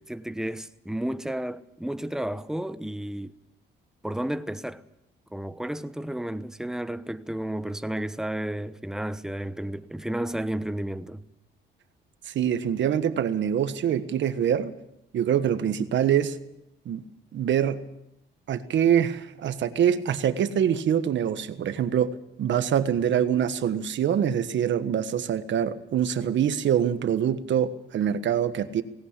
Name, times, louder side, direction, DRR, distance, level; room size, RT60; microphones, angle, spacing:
voice 1, 0.0-3.3 4.0-4.8 5.3-11.2, right 1 dB, 5° right, 1.0 m, -32 dB
voice 2, 12.3-14.7 15.1-16.4 16.8-17.0 17.3-17.8 18.5-28.8, right 9 dB, 65° right, 1.5 m, -25 dB
18.5 x 17.5 x 8.4 m
cardioid pair, 90°, 20 cm